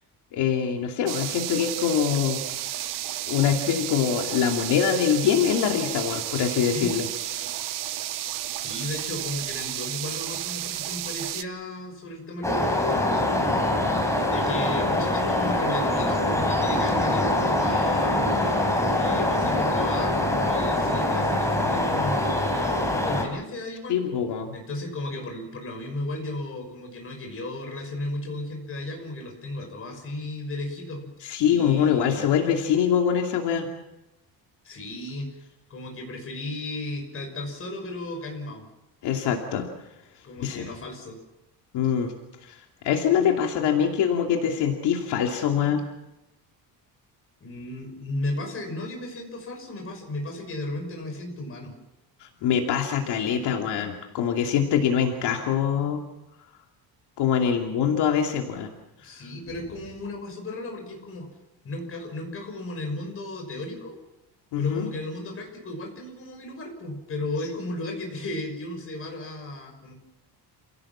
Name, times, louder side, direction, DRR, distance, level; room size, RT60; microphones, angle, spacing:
voice 1, 0.3-2.4 3.3-7.1 7.4-7.5 23.9-24.5 31.2-33.7 39.0-39.7 40.4-40.7 41.7-42.1 42.4-45.8 52.2-56.0 57.2-58.7 59.1-59.2 64.5-64.9, left 8 dB, 75° left, 2 dB, 2.7 m, -24 dB
sound 1, 1.1-11.4, right 13 dB, 50° right, 0.8 m, -32 dB
voice 2, 6.6-6.9 8.5-13.4 14.2-18.6 18.9-22.5 22.9-24.2 24.5-31.1 31.5-32.4 34.6-35.4 35.7-38.6 40.2-41.2 47.4-51.7 59.0-61.3 61.6-64.0 64.6-69.9, left 2 dB, 30° left, 3 dB, 6.0 m, -35 dB
sound 2, 12.4-23.2, left 1 dB, 5° left, 3.9 m, -24 dB
28.5 x 17.0 x 7.4 m, 0.97 s
cardioid pair, 175°, 41 cm